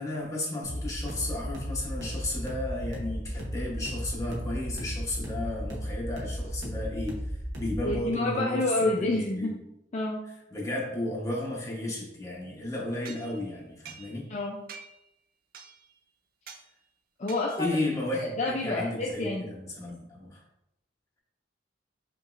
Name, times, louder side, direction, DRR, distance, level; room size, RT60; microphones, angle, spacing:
voice 1, 0.0-9.6 10.5-14.3 16.5-16.6 17.6-20.4, left 1 dB, 15° left, -4 dB, 1.0 m, -33 dB
sound 1, 0.6-8.0, equal, 80° right, 1.0 m, -35 dB
voice 2, 7.8-9.6 9.9-10.3 14.3-14.6 17.2-17.8 18.1-19.5, left 2 dB, 40° left, -2 dB, 0.4 m, -29 dB
sound 2, 13.0-14.4 14.7-15.1 15.5-16.0 16.5-16.7 17.3-17.8, right 6 dB, 50° right, 0.4 m, -47 dB
5.4 x 3.0 x 2.5 m, 0.86 s
head